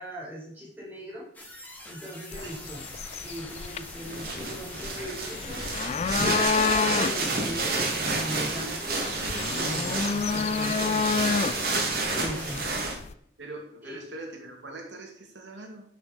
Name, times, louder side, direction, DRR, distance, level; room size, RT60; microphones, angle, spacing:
voice 1, 0.0-2.8 3.2-5.6 6.2-11.8 12.1-12.6 13.8-14.0, right 1 dB, 10° right, -6 dB, 5.3 m, -39 dB
sound 1, 1.3-12.7, left 1 dB, 10° left, 2.6 m, -44 dB
sound 2, 2.3-13.1, left 5 dB, 35° left, 0.3 m, -30 dB
sound 3, 4.0-12.9, right 3 dB, 55° right, 2.8 m, -30 dB
voice 2, 11.9-12.7 13.4-15.8, right 2 dB, 85° right, 1 dB, 2.5 m, -43 dB
12.5 x 6.6 x 5.3 m, 0.66 s
head